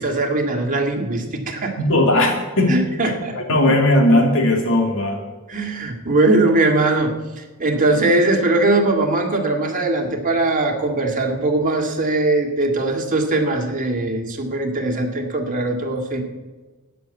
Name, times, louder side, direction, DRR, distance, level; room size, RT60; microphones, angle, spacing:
voice 1, 0.0-1.7 2.7-3.4 5.5-16.2, right 2 dB, 40° right, 2 dB, 2.1 m, -20 dB
voice 2, 1.8-2.8 3.0-5.2, left 1 dB, 65° left, 2 dB, 2.6 m, -17 dB
12.5 x 9.2 x 8.3 m, 1.3 s
head